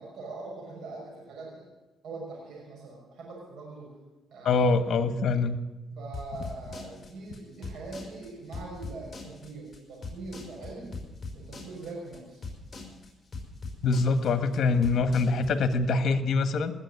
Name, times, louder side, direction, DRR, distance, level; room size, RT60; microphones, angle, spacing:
voice 1, 0.0-1.7 2.0-3.9 4.3-4.7 6.0-11.0 11.3-12.5, right 3 dB, 75° right, -2 dB, 6.1 m, -42 dB
voice 2, 4.4-5.6 13.8-16.7, left 4 dB, 60° left, 10 dB, 1.4 m, -24 dB
sound 1, 6.1-15.7, left 3 dB, 30° left, 5.1 m, -41 dB
19.5 x 7.5 x 9.7 m, 1.1 s
cardioid pair, 90°, 0 cm